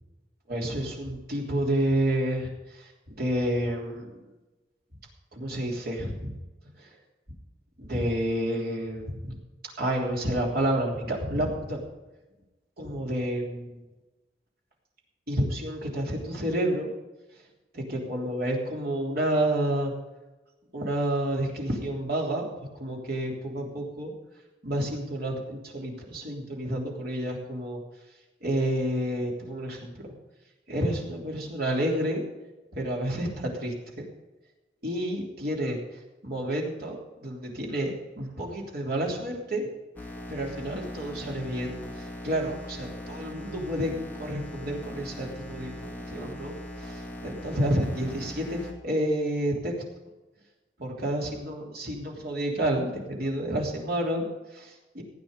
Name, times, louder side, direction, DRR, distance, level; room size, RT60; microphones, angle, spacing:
voice 1, 0.5-4.1 5.3-6.3 6.8-6.9 7.8-9.4 9.8-11.8 12.8-13.8 15.3-16.9 17.7-19.9 20.7-22.5 22.7-24.1 24.6-27.8 28.4-30.1 30.7-32.2 32.7-34.0 34.8-35.8 36.2-37.9 38.2-39.7 40.3-49.7 50.8-55.0, right 1 dB, 60° right, -1 dB, 3.3 m, -30 dB
sound 1, 40.0-48.7, left 1 dB, 10° left, 2.3 m, -40 dB
16.0 x 9.0 x 5.2 m, 1.1 s
head